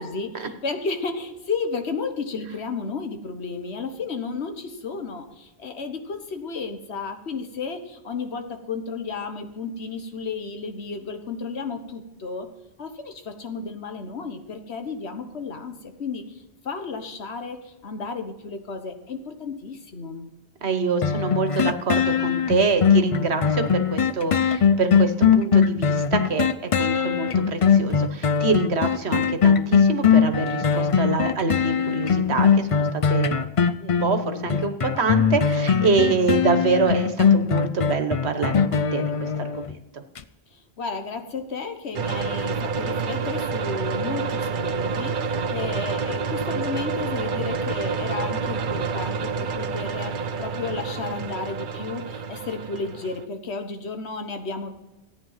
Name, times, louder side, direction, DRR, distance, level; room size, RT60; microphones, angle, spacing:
voice 1, 0.0-12.5 12.8-20.3 40.5-54.7, left 4 dB, 75° left, 7 dB, 1.5 m, -33 dB
voice 2, 20.6-33.4 33.8-40.0, right 4 dB, 75° right, 8 dB, 1.5 m, -26 dB
sound 1, 21.0-39.7 40.2-40.3, left 6 dB, 45° left, 0.5 m, -20 dB
sound 2, 41.9-53.2, right 5 dB, 55° right, 0.8 m, -28 dB
14.0 x 9.5 x 5.6 m, 0.99 s
omnidirectional pair, 1.1 m